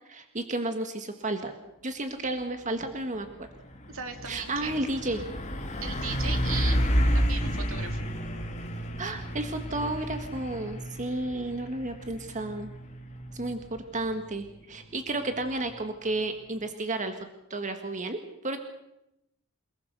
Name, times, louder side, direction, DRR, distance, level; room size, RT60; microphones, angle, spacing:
voice 1, 0.1-1.5 1.8-3.3 4.3-5.2 9.0-12.7 13.3-17.2 17.5-18.2 18.4-18.6, right 2 dB, 35° right, 6 dB, 1.7 m, -32 dB
Truck, 2.6-2.9 3.2-15.8, equal, 35° left, 2.9 m, -31 dB
voice 2, 3.9-4.8 5.8-6.9 7.1-8.0, right 6 dB, 65° right, 6 dB, 2.8 m, -37 dB
28.5 x 19.5 x 6.8 m, 0.86 s
head